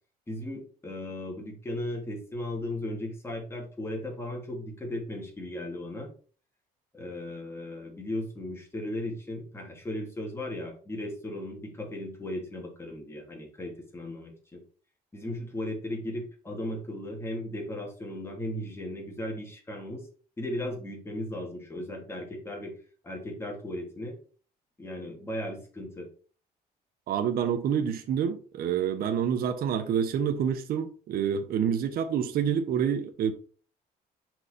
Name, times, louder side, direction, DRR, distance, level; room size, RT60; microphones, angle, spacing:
voice 1, 0.3-6.1 6.9-14.6 15.1-20.1 20.4-22.7 23.0-24.2 24.8-26.1, left 1 dB, 15° left, 2.5 m, -36 dB
voice 2, 27.1-33.3, right 8 dB, 60° right, 0.9 m, -27 dB
5.6 x 4.6 x 5.1 m
cardioid pair, 110°, 17 cm